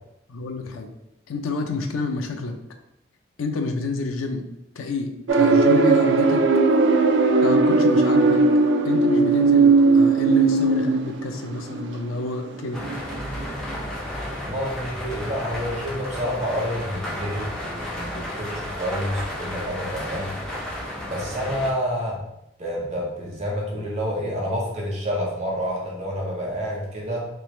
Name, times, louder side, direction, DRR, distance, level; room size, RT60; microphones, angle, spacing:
voice 1, 0.3-0.9 1.3-2.6 3.4-4.5 4.8-6.4 7.4-8.4 8.8-12.8 18.2-18.3, left 3 dB, 90° left, 5 dB, 0.4 m, -29 dB
sound 1, 5.3-13.2 13.4-13.7, right 3 dB, 65° right, 0.4 m, -18 dB
sound 2, 12.7-21.7, left 1 dB, 5° left, 0.6 m, -32 dB
voice 2, 14.3-20.4 21.0-22.2 22.6-27.3, equal, 35° right, -3 dB, 0.9 m, -29 dB
3.4 x 3.0 x 3.1 m, 0.84 s
head